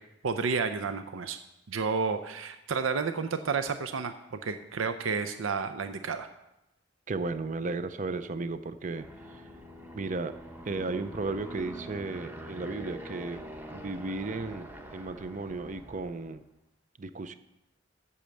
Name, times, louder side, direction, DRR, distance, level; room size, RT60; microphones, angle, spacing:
voice 1, 0.2-1.4 1.7-6.3, right 5 dB, 85° right, 9 dB, 0.6 m, -31 dB
voice 2, 7.1-9.4 9.9-10.4 10.6-13.4 13.7-16.4 17.0-17.4, right 3 dB, 40° right, 12 dB, 0.5 m, -34 dB
Aircraft, 9.0-16.3, right 1 dB, 10° right, 0.9 m, -45 dB
8.5 x 7.1 x 7.6 m, 0.91 s
head